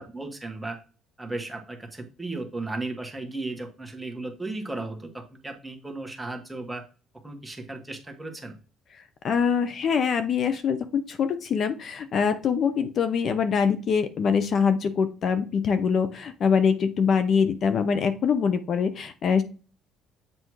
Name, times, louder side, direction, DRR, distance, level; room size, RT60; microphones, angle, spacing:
voice 1, 0.1-0.8 1.2-6.8 7.2-8.5, right 2 dB, 10° right, 3 dB, 1.3 m, -35 dB
voice 2, 9.2-19.4, left 6 dB, 50° left, 10 dB, 0.6 m, -24 dB
7.7 x 2.6 x 4.6 m, 0.36 s
cardioid pair, 125°, 0 cm